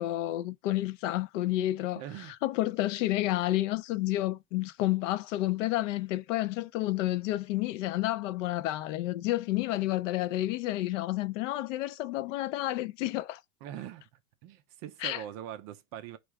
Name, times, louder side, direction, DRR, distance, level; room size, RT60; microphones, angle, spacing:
voice 1, 0.0-2.0 2.4-13.4 15.0-15.2, left 16 dB, 65° left, 0.5 m, -30 dB
voice 2, 1.9-2.4 13.6-14.1 14.4-16.2, right 11 dB, 35° right, 0.4 m, -42 dB
4.6 x 2.3 x 4.6 m
supercardioid pair, 140°, 41 cm